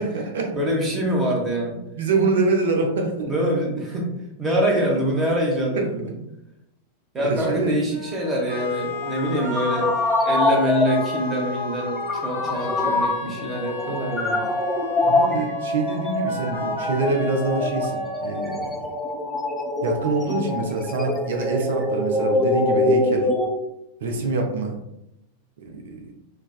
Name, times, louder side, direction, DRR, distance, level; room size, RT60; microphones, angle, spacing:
voice 1, 0.0-0.5 2.0-3.3 4.7-5.0 5.7-5.9 7.2-7.8 15.0-18.9 19.8-23.3 24.0-24.8 25.6-26.1, right 3 dB, 60° right, 3 dB, 0.5 m, -25 dB
voice 2, 0.5-1.8 3.2-4.1 4.4-6.0 7.1-9.9 10.2-14.5, equal, 20° right, -1 dB, 0.8 m, -25 dB
sound 1, 7.9-18.9, left 1 dB, 80° left, 0.8 m, -34 dB
sound 2, 9.0-23.5, left 2 dB, 5° left, 0.3 m, -24 dB
3.4 x 2.0 x 2.4 m, 0.85 s
figure-of-eight pair, 90°, 0 cm